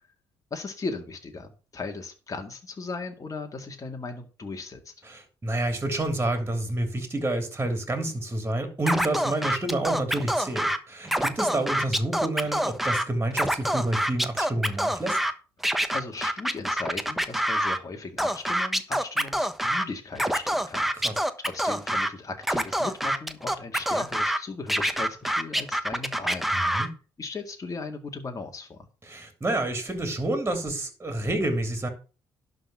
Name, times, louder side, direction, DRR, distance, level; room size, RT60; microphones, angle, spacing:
voice 1, 0.5-4.9 15.9-26.5 27.2-28.9, left 3 dB, 35° left, 3 dB, 2.0 m, -37 dB
voice 2, 5.1-15.2 21.0-21.1 26.5-26.9 29.1-31.9, right 1 dB, 20° right, 6 dB, 3.1 m, -29 dB
Scratching (performance technique), 8.9-10.8 11.1-13.0 13.3-15.3 15.6-17.8 18.2-19.8 20.1-22.1 22.4-24.4 24.7-26.9, equal, ahead, 1.2 m, -26 dB
11.5 x 4.1 x 7.5 m, 0.35 s
supercardioid pair, 60°, 10 cm